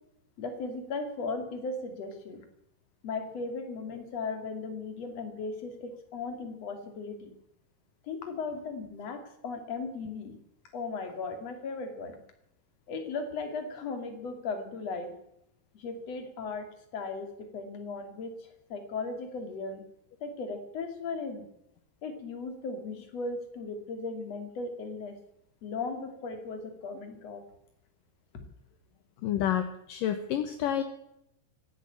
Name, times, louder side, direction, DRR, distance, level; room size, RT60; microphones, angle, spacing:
voice 1, 0.4-2.4 3.0-7.3 8.0-10.4 10.7-12.2 12.9-15.1 15.7-19.8 20.2-21.5 22.0-25.2 25.6-27.4, left 4 dB, 40° left, 6 dB, 3.0 m, -37 dB
voice 2, 29.2-30.8, left 10 dB, 70° left, 8 dB, 2.2 m, -29 dB
16.0 x 10.0 x 8.9 m, 0.79 s
omnidirectional pair, 5.1 m